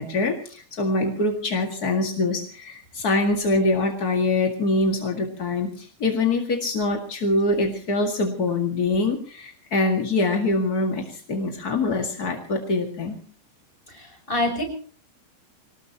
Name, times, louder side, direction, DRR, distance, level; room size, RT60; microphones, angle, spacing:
voice 1, 0.0-13.2, left 2 dB, 45° left, 3 dB, 1.3 m, -24 dB
voice 2, 13.9-14.6, left 1 dB, 10° left, 3 dB, 5.9 m, -26 dB
25.5 x 19.0 x 2.9 m, 0.42 s
omnidirectional pair, 4.9 m